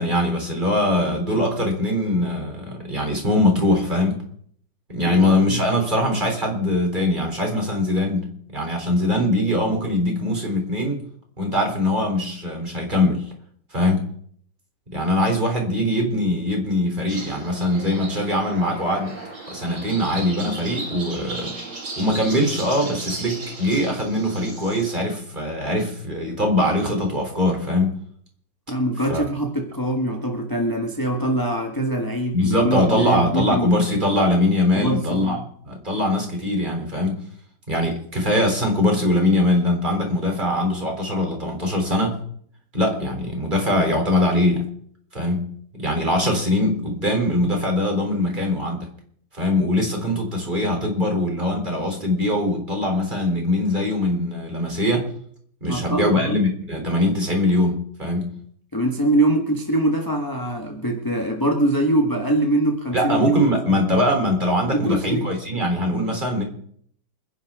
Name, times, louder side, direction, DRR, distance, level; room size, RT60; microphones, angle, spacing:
voice 1, 0.0-4.2 4.9-11.0 11.4-13.3 13.7-14.1 14.9-19.1 19.5-21.5 22.0-28.0 29.1-29.2 32.3-35.4 35.6-37.1 37.7-42.2 42.7-44.6 45.1-45.5 45.8-48.9 49.3-55.1 55.6-58.3 62.9-66.4, left 1 dB, 25° right, 1 dB, 3.7 m, -22 dB
voice 2, 5.0-5.6 28.7-33.7 34.7-35.5 55.7-56.4 58.7-63.4 63.7-64.0 64.7-65.3, right 1 dB, 10° left, 2 dB, 1.4 m, -23 dB
sound 1, 17.1-25.0, right 2 dB, 75° right, 6.1 m, -35 dB
28.5 x 11.0 x 3.7 m, 0.63 s
omnidirectional pair, 2.1 m